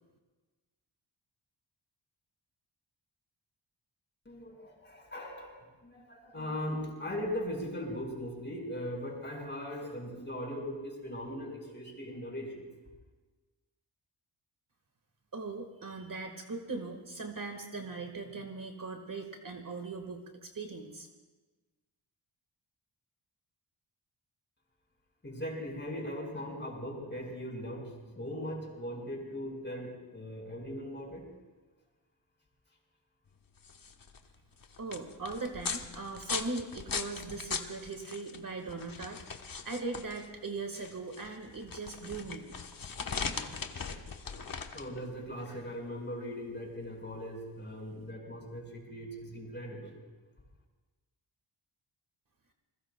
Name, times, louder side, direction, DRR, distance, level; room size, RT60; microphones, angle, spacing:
voice 1, 4.3-12.7 25.2-31.2 43.2-43.4 43.9-49.9, equal, 25° left, -1 dB, 5.2 m, -39 dB
voice 2, 15.3-21.1 34.8-42.5, right 3 dB, 45° right, 4 dB, 1.6 m, -40 dB
sound 1, 33.5-48.0, left 5 dB, 45° left, 1.1 m, -40 dB
28.5 x 21.0 x 2.2 m, 1.3 s
wide cardioid pair, 115°, 46 cm